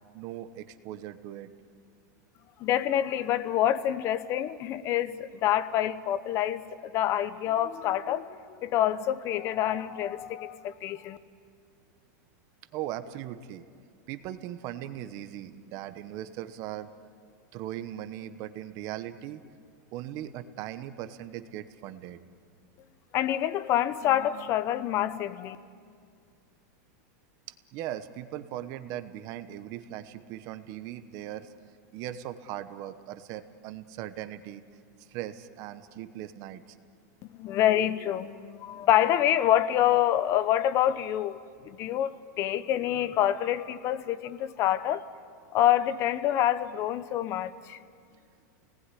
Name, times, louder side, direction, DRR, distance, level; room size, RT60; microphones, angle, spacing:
voice 1, 0.1-1.5 12.7-13.6 14.1-16.9 17.5-19.4 19.9-22.2 27.7-31.5 31.9-34.6 35.0-36.8, right 12 dB, 35° right, 11 dB, 1.0 m, -39 dB
voice 2, 2.6-11.2 23.1-25.6 37.4-41.4 41.6-45.0 45.5-47.8, left 12 dB, 30° left, 15 dB, 0.8 m, -27 dB
29.5 x 19.0 x 9.9 m, 2.3 s
supercardioid pair, 165°, 10 cm